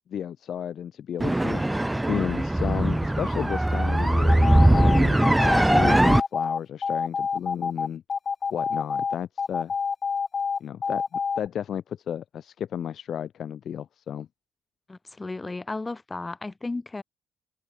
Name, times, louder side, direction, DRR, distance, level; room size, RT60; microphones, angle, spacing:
voice 1, 0.1-1.6 2.1-5.2 5.7-8.0 8.5-9.7 10.6-14.3, left 9 dB, 60° left, 6.4 m, -33 dB
sound 1, 1.2-6.2, right 1 dB, 10° right, 0.3 m, -20 dB
sound 2, 4.3-11.5, left 5 dB, 40° left, 1.8 m, -27 dB
voice 2, 14.9-17.0, left 3 dB, 20° left, 4.7 m, -34 dB
open air
supercardioid pair, 80°, 0 cm